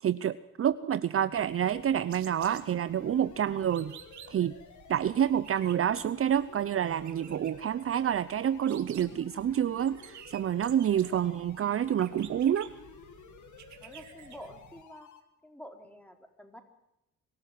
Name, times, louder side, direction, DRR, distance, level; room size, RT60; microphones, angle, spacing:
voice 1, 0.0-3.9 4.3-4.6 4.9-12.7, right 9 dB, 45° right, 14 dB, 0.7 m, -28 dB
sound 1, 1.3-14.8, right 10 dB, 70° right, 1.9 m, -53 dB
sound 2, 2.5-15.2, left 8 dB, 75° left, 2.5 m, -53 dB
voice 2, 13.8-15.1 15.4-16.6, equal, 5° left, 4 dB, 4.1 m, -48 dB
24.0 x 13.5 x 9.3 m, 0.86 s
cardioid pair, 90°, 30 cm